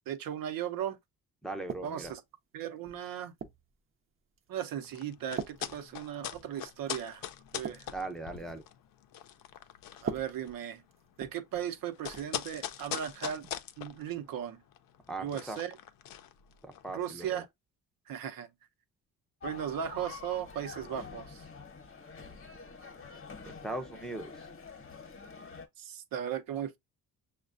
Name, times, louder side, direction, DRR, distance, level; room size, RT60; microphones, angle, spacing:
voice 1, 0.1-1.0 1.8-2.2 2.5-3.3 4.5-7.2 7.5-7.9 10.0-10.8 11.2-13.4 13.8-14.6 15.2-15.8 16.9-17.5 18.1-18.5 19.4-21.4 25.8-26.8, right 9 dB, 75° right, 0.7 m, -37 dB
voice 2, 1.4-2.1 7.9-8.6 15.1-15.6 16.6-17.4 23.5-24.3, right 2 dB, ahead, 0.6 m, -39 dB
sound 1, 1.7-2.2 2.8-3.7 4.4-4.6 5.4-6.5 6.9-7.0 7.4-8.7 9.9-11.7 12.1-12.3 13.4-13.6, right 6 dB, 40° right, 0.6 m, -42 dB
sound 2, 4.8-17.0, left 11 dB, 70° left, 0.5 m, -42 dB
sound 3, 19.4-25.7, left 4 dB, 35° left, 1.0 m, -47 dB
6.2 x 2.2 x 2.4 m
cardioid pair, 115°, 34 cm